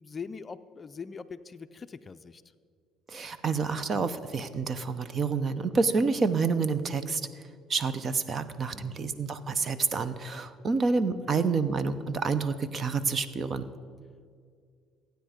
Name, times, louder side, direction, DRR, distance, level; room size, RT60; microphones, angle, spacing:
voice 1, 0.0-2.4 8.7-9.1 11.3-11.4, left 5 dB, 30° left, 11 dB, 0.4 m, -42 dB
voice 2, 3.1-7.2 7.7-13.7, right 4 dB, 40° right, 13 dB, 0.8 m, -28 dB
15.5 x 9.3 x 5.1 m, 2.1 s
cardioid pair, 95°, 0 cm